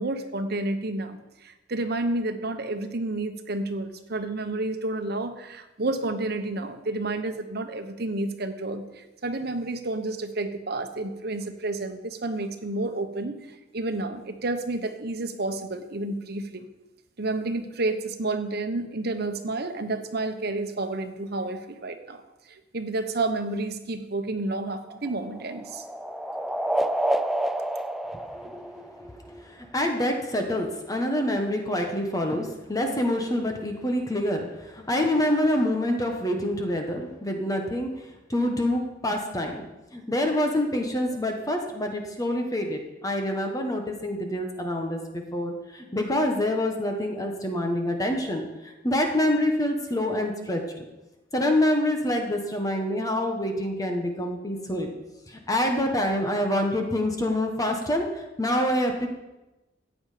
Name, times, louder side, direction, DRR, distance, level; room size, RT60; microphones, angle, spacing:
voice 1, 0.0-13.4 13.7-16.6 17.2-22.2 22.5-25.8, right 2 dB, 60° right, 8 dB, 1.1 m, -30 dB
sound 1, 24.6-29.3, right 1 dB, ahead, 0.4 m, -29 dB
voice 2, 28.3-39.6 39.9-50.8 51.3-54.9 55.3-59.1, left 1 dB, 20° left, 3 dB, 1.3 m, -26 dB
15.0 x 8.9 x 5.1 m, 1.0 s
head